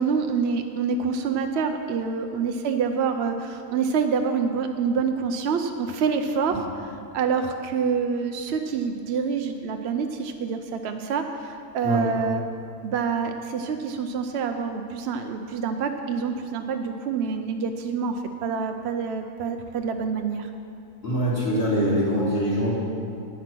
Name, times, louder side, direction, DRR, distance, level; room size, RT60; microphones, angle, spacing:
voice 1, 0.0-6.7 7.1-12.4 12.8-20.5, right 5 dB, 65° right, 6 dB, 0.6 m, -27 dB
voice 2, 21.0-22.8, equal, 40° left, -7 dB, 3.3 m, -23 dB
10.5 x 9.3 x 6.0 m, 2.5 s
omnidirectional pair, 1.7 m